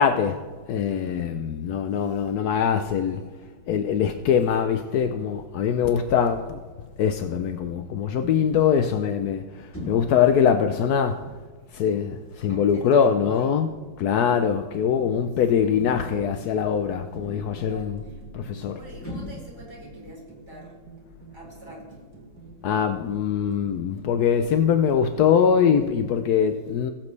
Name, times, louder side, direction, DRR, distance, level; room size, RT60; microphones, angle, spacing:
voice 1, 0.0-3.2 3.7-6.6 7.0-11.2 11.7-13.7 14.0-18.0 18.3-18.8 22.6-26.9, left 7 dB, 80° left, 0.8 m, -23 dB
voice 2, 1.9-2.2 2.7-3.7 4.5-4.8 11.6-13.6 15.3-17.1 17.5-22.7, equal, 10° right, 3.5 m, -47 dB
sound 1, 9.7-10.2 11.1-11.4 12.5-13.0 14.1-14.3 15.8-16.3 17.1-17.6 19.0-19.7, left 1 dB, 5° left, 3.1 m, -38 dB
sound 2, 13.1-26.0, right 4 dB, 50° right, 2.4 m, -48 dB
20.0 x 7.4 x 3.3 m
omnidirectional pair, 2.3 m